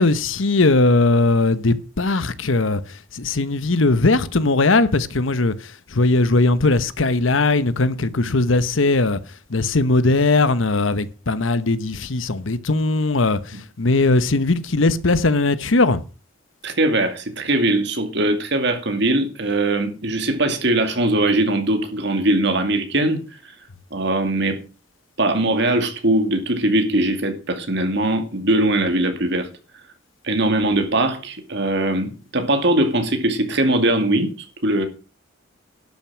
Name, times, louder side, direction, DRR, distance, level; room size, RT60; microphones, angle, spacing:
voice 1, 0.0-2.8 3.1-9.2 9.5-16.0, left 3 dB, 75° left, 1.0 m, -19 dB
voice 2, 16.6-23.2 23.9-24.6 25.2-29.5 30.2-34.9, right 1 dB, 60° right, 2.4 m, -21 dB
11.5 x 9.2 x 6.2 m
head